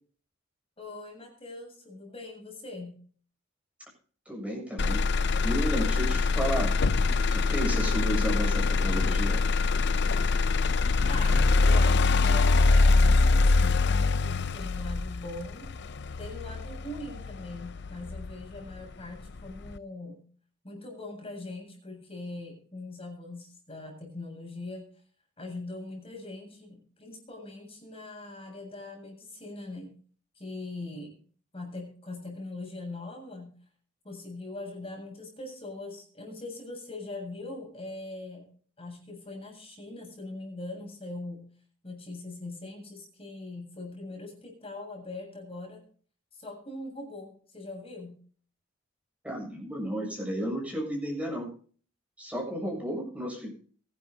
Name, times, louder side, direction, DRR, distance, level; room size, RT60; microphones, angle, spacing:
voice 1, 0.8-3.0 11.1-15.7 16.2-20.2 20.6-24.9 25.4-29.9 30.4-31.1 31.5-33.5 34.0-38.5 38.8-41.5 41.8-45.8 46.3-48.2, left 2 dB, 30° left, 1 dB, 7.4 m, -41 dB
voice 2, 4.3-6.7 7.0-9.4 49.2-51.5 52.2-53.5, right 1 dB, 5° right, -1 dB, 7.2 m, -33 dB
Motor vehicle (road), 4.8-18.8 19.3-19.8, left 3 dB, 60° left, 0.6 m, -24 dB
23.5 x 11.0 x 2.8 m, 0.44 s
head